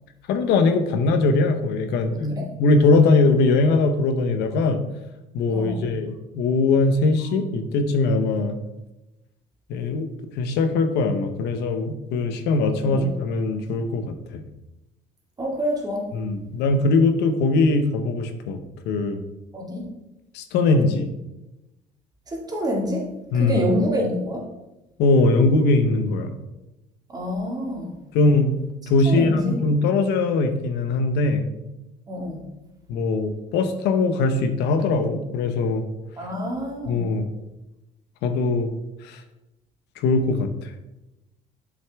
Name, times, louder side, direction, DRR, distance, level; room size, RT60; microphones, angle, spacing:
voice 1, 0.3-4.8 5.3-8.6 9.7-10.1 10.4-14.4 16.1-18.6 18.9-19.2 20.3-21.1 23.3-23.7 25.0-26.4 28.1-28.5 28.9-31.4 32.9-35.8 36.9-37.3 38.2-38.7 39.0-39.2 40.0-40.7, left 3 dB, 85° left, 8 dB, 0.9 m, -21 dB
voice 2, 5.5-5.9 12.8-13.0 15.4-16.1 19.5-19.9 22.3-23.1 23.3-24.5 27.1-27.9 29.1-29.6 32.1-32.4 36.2-37.2, equal, 25° right, -1 dB, 2.1 m, -27 dB
7.4 x 6.3 x 3.5 m, 0.97 s
cardioid pair, 110°, 17 cm